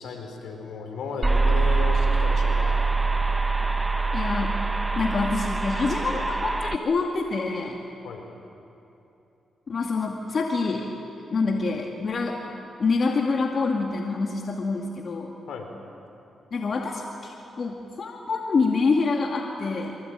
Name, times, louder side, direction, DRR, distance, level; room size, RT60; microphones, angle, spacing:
voice 1, 0.0-2.8 8.0-8.3 15.5-15.7, left 4 dB, 80° left, 3 dB, 4.5 m, -35 dB
sound 1, 1.2-6.8, right 3 dB, 20° right, 1.1 m, -24 dB
voice 2, 4.1-4.6 5.0-7.8 9.7-10.9 11.3-12.4 12.8-15.3 16.5-20.0, left 4 dB, 55° left, 1 dB, 2.3 m, -26 dB
25.5 x 24.0 x 9.0 m, 2.8 s
cardioid pair, 75°, 0 cm